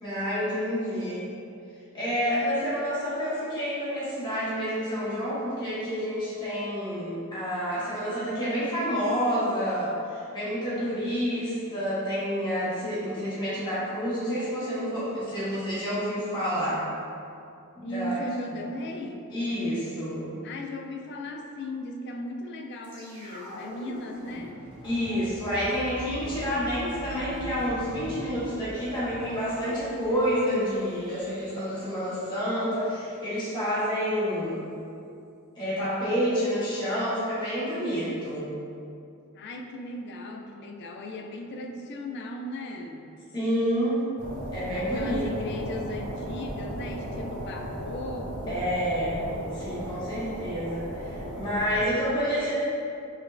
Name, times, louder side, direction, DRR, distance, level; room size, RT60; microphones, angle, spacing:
voice 1, 0.0-1.2 1.9-16.8 17.7-18.2 19.3-20.3 24.8-34.6 35.6-38.4 43.3-44.0 44.5-45.2 48.5-49.3 49.5-52.5, equal, 20° left, -11 dB, 1.4 m, -29 dB
voice 2, 10.7-11.5 17.8-19.3 20.4-24.6 39.3-43.1 44.7-48.7, left 1 dB, 50° left, 3 dB, 0.4 m, -37 dB
sound 1, 22.8-33.0 33.2-33.3, equal, 20° right, 1.2 m, -43 dB
sound 2, 44.2-51.9, right 1 dB, 85° right, 0.9 m, -36 dB
5.1 x 3.2 x 2.5 m, 2.6 s
head